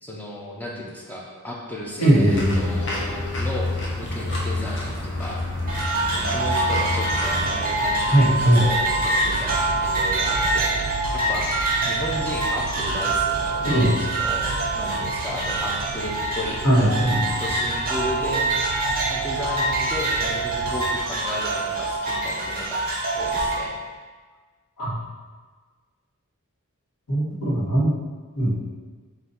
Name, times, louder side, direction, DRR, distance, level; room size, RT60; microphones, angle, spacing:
voice 1, 0.0-5.4 6.3-11.5 11.8-18.5 19.1-22.9 23.1-23.8, left 1 dB, 5° left, -4 dB, 0.4 m, -34 dB
voice 2, 2.0-2.9 8.1-8.6 13.6-13.9 16.6-17.2 24.8-24.9 27.1-27.9 28.3-28.5, right 1 dB, 80° left, -8 dB, 1.2 m, -19 dB
sound 1, 2.3-7.5, left 2 dB, 55° left, 0.7 m, -28 dB
sound 2, 5.7-23.5, right 2 dB, 40° right, 0.8 m, -25 dB
sound 3, 7.2-21.0, right 3 dB, 85° right, 0.3 m, -35 dB
3.9 x 2.5 x 4.0 m, 1.4 s
head